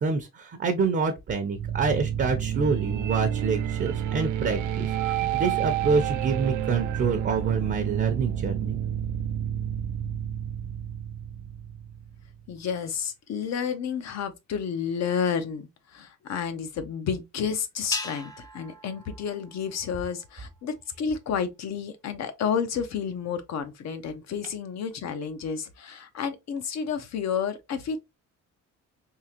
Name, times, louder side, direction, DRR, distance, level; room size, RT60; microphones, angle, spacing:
voice 1, 0.0-8.8, right 5 dB, 40° right, 0.6 m, -27 dB
sound 1, 1.5-12.5, right 10 dB, 80° right, 0.5 m, -30 dB
voice 2, 12.5-28.0, left 7 dB, 60° left, 0.8 m, -31 dB
sound 2, 17.9-20.4, left 2 dB, 10° left, 0.5 m, -39 dB
3.7 x 2.8 x 2.8 m
cardioid pair, 135°, 30 cm